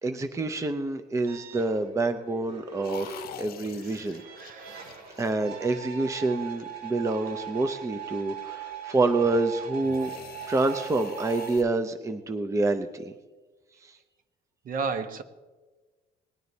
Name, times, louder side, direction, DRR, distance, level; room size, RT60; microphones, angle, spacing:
voice 1, 0.0-4.2 5.2-10.1 10.5-13.1 13.8-14.0, right 2 dB, 15° right, 8 dB, 0.6 m, -27 dB
sound 1, 1.3-11.6, right 9 dB, 70° right, 2.2 m, -41 dB
sound 2, 2.8-6.0 9.8-11.6, left 11 dB, 65° left, 0.7 m, -45 dB
voice 2, 3.8-5.0 14.6-15.2, right 5 dB, 55° right, 9 dB, 1.1 m, -34 dB
19.5 x 9.3 x 4.1 m, 1.3 s
cardioid pair, 110°, 17 cm